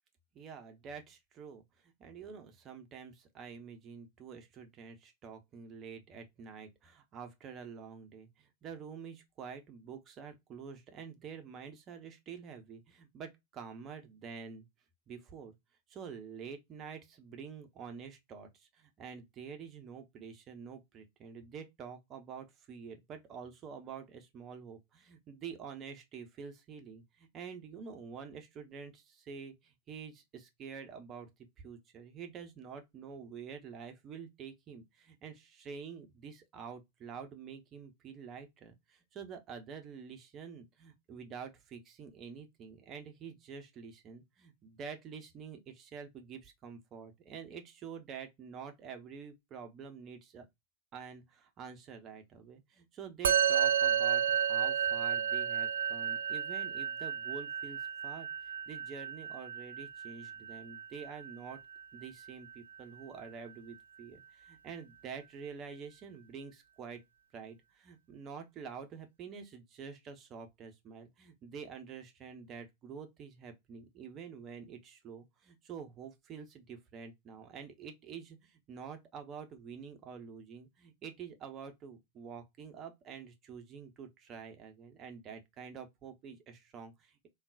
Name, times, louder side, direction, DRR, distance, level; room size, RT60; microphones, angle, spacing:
voice 1, 0.3-14.7 15.1-15.6 15.9-31.3 31.6-50.4 50.9-58.3 58.7-61.6 61.9-67.0 67.3-87.3, right 6 dB, 30° right, 0.8 m, -47 dB
Musical instrument, 53.2-62.8, right 8 dB, 65° right, 0.4 m, -32 dB
3.7 x 2.4 x 2.4 m
figure-of-eight pair, 90°, 0 cm